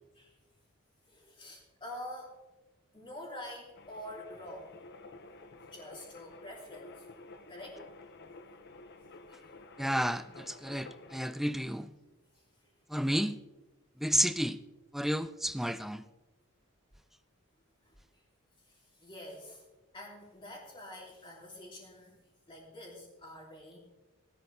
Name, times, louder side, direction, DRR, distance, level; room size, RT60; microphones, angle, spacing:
voice 1, 1.1-2.4 2.9-4.7 5.6-6.9 7.5-7.8 9.3-9.5 12.3-12.4 15.0-15.1 17.8-18.0 18.7-19.6 19.9-22.1 22.5-23.8, left 1 dB, 25° left, 3.4 m, -47 dB
sound 1, 3.7-11.3, left 3 dB, 55° left, 1.0 m, -52 dB
voice 2, 9.8-11.9 12.9-13.4 14.0-14.6 14.9-16.0, equal, ahead, 0.4 m, -31 dB
18.5 x 12.5 x 3.4 m
head